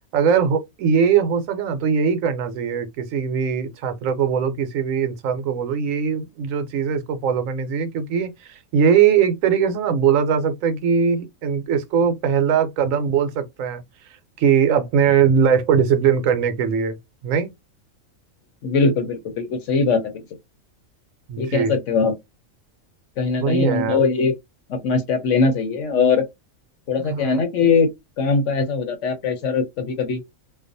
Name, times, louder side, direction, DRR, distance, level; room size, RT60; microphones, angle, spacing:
voice 1, 0.1-13.8 14.4-17.0 17.2-17.5 21.3-21.7 23.4-24.0 27.1-27.4, right 7 dB, 75° right, 1.0 m, -20 dB
voice 2, 18.6-20.2 21.4-22.2 23.2-24.3 24.7-26.2 26.9-27.9 28.2-30.2, left 4 dB, 65° left, 0.9 m, -21 dB
2.4 x 2.3 x 2.5 m
omnidirectional pair, 1.4 m